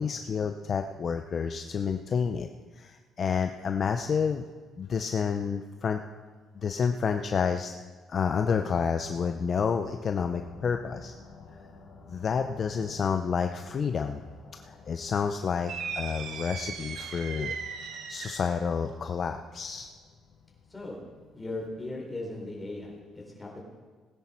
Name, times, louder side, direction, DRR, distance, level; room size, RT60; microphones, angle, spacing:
voice 1, 0.0-2.5 2.7-4.4 4.8-6.0 6.6-7.7 8.1-11.1 12.1-14.2 14.6-17.5 18.1-19.9, left 6 dB, 40° left, 6 dB, 0.6 m, -29 dB
sound 1, 10.3-23.0, left 4 dB, 80° left, 2.4 m, -53 dB
sound 2, 15.7-18.6, right 6 dB, 70° right, 1.2 m, -37 dB
voice 2, 20.7-21.0 21.3-23.6, left 2 dB, 10° left, -3 dB, 4.1 m, -38 dB
18.5 x 10.0 x 4.4 m, 1.5 s
cardioid pair, 125°, 0 cm